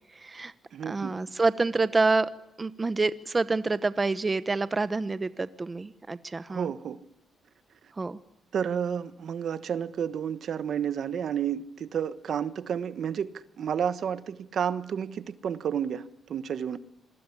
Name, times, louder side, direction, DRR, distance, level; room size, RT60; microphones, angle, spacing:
voice 1, 0.2-0.5 0.9-2.3 2.6-6.7 8.0-8.2, right 3 dB, 25° right, 1.0 m, -27 dB
voice 2, 0.7-1.1 6.5-7.0 8.5-16.8, right 8 dB, 60° right, 1.2 m, -31 dB
27.0 x 21.5 x 9.9 m
cardioid pair, 120°, 0 cm